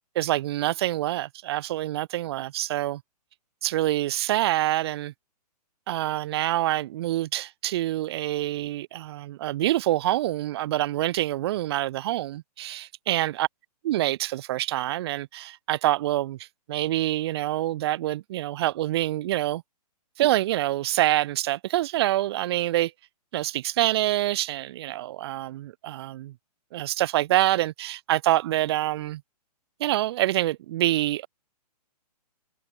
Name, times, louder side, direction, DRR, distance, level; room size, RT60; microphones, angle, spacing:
voice 1, 0.2-3.0 3.6-5.1 5.9-13.5 13.8-19.6 20.2-22.9 23.3-26.3 26.7-29.2 29.8-31.3, right 15 dB, 40° right, 0.4 m, -26 dB
hypercardioid pair, 130°, 21 cm